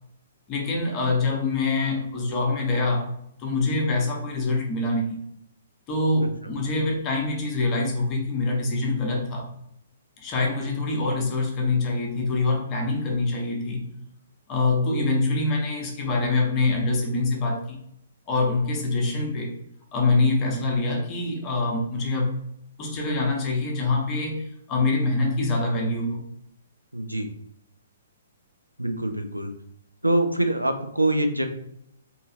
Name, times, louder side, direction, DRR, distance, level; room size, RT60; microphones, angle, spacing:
voice 1, 0.5-3.1 3.4-5.2 5.9-9.5 10.2-13.8 14.5-17.8 18.3-19.5 19.9-22.3 22.8-26.2, left 3 dB, 25° left, 0 dB, 0.7 m, -25 dB
voice 2, 26.9-27.3 28.8-29.5 30.0-31.5, right 1 dB, 85° right, 6 dB, 0.4 m, -24 dB
2.7 x 2.4 x 2.7 m, 0.75 s
figure-of-eight pair, 120°, 0 cm